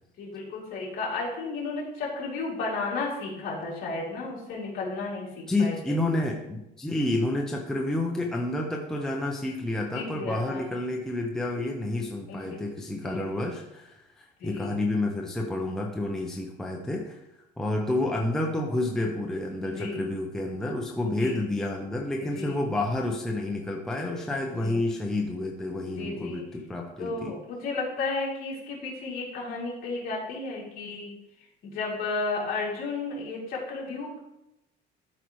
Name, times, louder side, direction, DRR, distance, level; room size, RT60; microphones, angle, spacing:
voice 1, 0.2-6.0 9.9-10.6 12.3-12.6 13.0-13.5 14.4-14.7 19.6-20.0 21.2-21.4 22.2-22.6 24.6-24.8 25.9-26.4 27.0-31.1 31.6-34.2, left 3 dB, 55° left, -4 dB, 2.8 m, -33 dB
voice 2, 5.5-17.2 17.6-27.4, left 2 dB, 5° left, 0 dB, 0.6 m, -29 dB
12.0 x 4.8 x 3.1 m, 0.89 s
cardioid pair, 170°, 19 cm